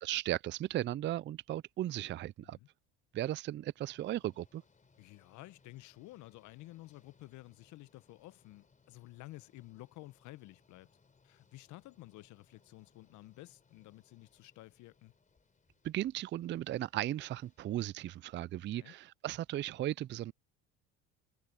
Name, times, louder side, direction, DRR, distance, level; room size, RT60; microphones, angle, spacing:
voice 1, 0.0-2.6 3.1-4.6 15.8-20.3, right 13 dB, 35° right, 0.5 m, -36 dB
sound 1, 3.8-18.2, left 4 dB, 25° left, 4.5 m, -70 dB
voice 2, 5.0-10.9 11.2-15.1 18.7-18.9, left 18 dB, 60° left, 1.3 m, -52 dB
hypercardioid pair, 80°, 33 cm